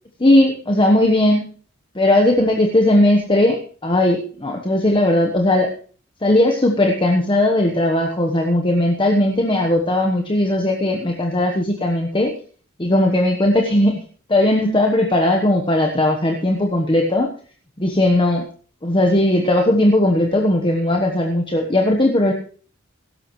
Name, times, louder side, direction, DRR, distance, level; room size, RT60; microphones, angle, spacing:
voice 1, 0.2-1.4 1.9-5.7 6.2-12.3 12.8-14.0 14.3-17.3 17.8-18.4 18.8-22.3, left 1 dB, 25° left, 2 dB, 1.1 m, -17 dB
16.5 x 12.5 x 3.1 m, 0.43 s
head